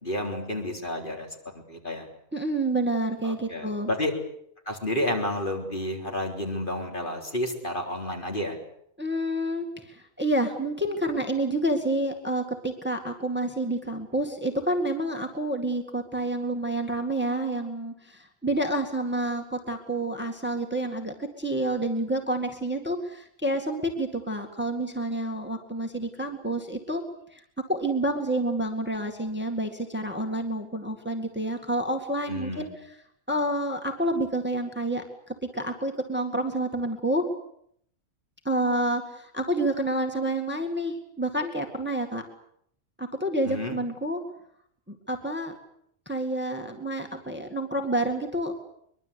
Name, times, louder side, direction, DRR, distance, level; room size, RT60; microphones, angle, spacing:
voice 1, 0.0-1.3 1.7-2.1 3.2-4.1 4.7-8.6 32.3-32.7 43.4-43.8, left 1 dB, 40° left, 2 dB, 4.1 m, -30 dB
voice 2, 2.3-3.9 9.0-27.0 27.3-27.4 27.7-32.7 33.3-37.3 38.4-42.2 43.0-44.2 44.9-45.5 46.1-48.6, right 1 dB, 10° right, 3 dB, 2.1 m, -29 dB
23.5 x 22.5 x 8.4 m, 0.70 s
omnidirectional pair, 1.3 m